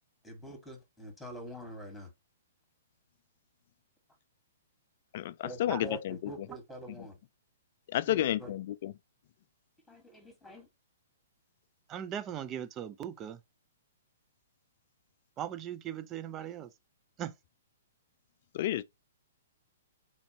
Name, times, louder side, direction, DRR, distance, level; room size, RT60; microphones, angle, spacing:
voice 1, 0.2-2.1 5.4-7.2 8.0-8.5 9.9-10.7, right 1 dB, 5° left, 1.5 m, -45 dB
voice 2, 5.1-6.1 7.9-8.9 18.5-18.8, left 13 dB, 50° left, 0.3 m, -31 dB
voice 3, 11.9-13.4 15.4-16.7 17.2-17.3, right 9 dB, 25° right, 0.5 m, -38 dB
4.4 x 2.6 x 2.8 m
hypercardioid pair, 120°, 0 cm